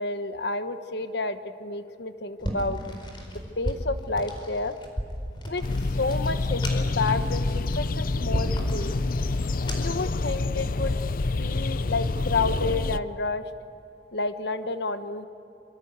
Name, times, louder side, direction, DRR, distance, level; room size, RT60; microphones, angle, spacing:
voice 1, 0.0-2.8 3.3-4.7 5.5-5.6 6.0-8.9 9.7-10.9 11.4-13.4 14.1-15.3, left 3 dB, 65° left, 10 dB, 1.1 m, -30 dB
sound 1, 2.4-10.1, equal, 25° left, 4.4 m, -35 dB
sound 2, 5.6-13.0, left 2 dB, 50° left, 0.6 m, -27 dB
26.0 x 24.5 x 8.2 m, 2.8 s
head